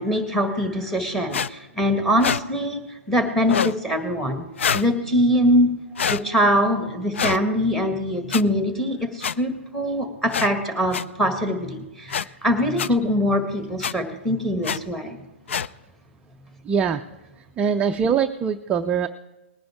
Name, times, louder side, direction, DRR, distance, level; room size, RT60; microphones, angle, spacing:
voice 1, 0.0-4.4 4.7-5.8 6.1-15.2, equal, 5° left, 6 dB, 1.7 m, -23 dB
sound 1, 1.3-1.5 2.2-2.4 3.4-3.8 4.6-4.9 6.0-6.2 7.1-7.4 8.3-8.4 9.2-9.3 10.3-10.5 10.9-11.0 12.1-12.3 12.8-12.9 13.8-13.9 14.6-14.8 15.5-15.7, left 7 dB, 70° left, 0.4 m, -25 dB
voice 2, 16.6-17.0 17.4-19.1, right 7 dB, 15° right, 6 dB, 0.4 m, -23 dB
20.0 x 10.0 x 3.5 m, 1.0 s
hypercardioid pair, 130°, 7 cm